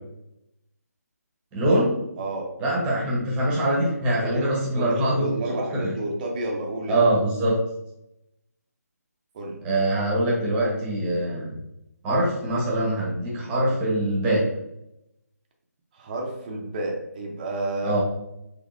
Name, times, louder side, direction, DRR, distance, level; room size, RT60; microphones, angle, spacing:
voice 1, 1.5-2.0 2.6-5.3 5.7-5.9 6.9-7.6 9.6-11.6 12.0-14.5 17.8-18.0, right 1 dB, 10° right, -5 dB, 1.0 m, -23 dB
voice 2, 4.2-7.0 9.3-9.6 15.9-18.0, right 1 dB, 30° right, 0 dB, 0.7 m, -30 dB
5.2 x 3.3 x 2.6 m, 0.86 s
figure-of-eight pair, 160°, 9 cm